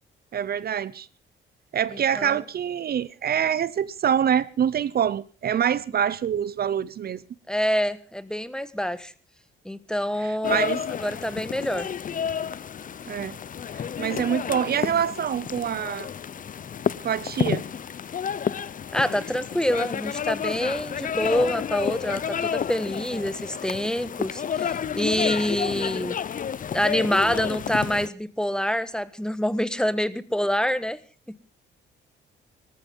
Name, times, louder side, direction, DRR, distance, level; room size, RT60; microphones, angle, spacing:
voice 1, 0.3-1.1 1.7-7.2 10.2-10.8 13.1-13.4 13.7-16.1 17.0-17.6, right 8 dB, 50° right, 0.7 m, -25 dB
voice 2, 1.9-2.4 7.5-9.1 9.6-11.9 18.9-26.2 26.7-31.0, equal, 5° left, 1.3 m, -26 dB
sound 1, 10.4-28.1, left 8 dB, 40° left, 0.7 m, -30 dB
18.5 x 14.0 x 5.4 m
cardioid pair, 90°, 20 cm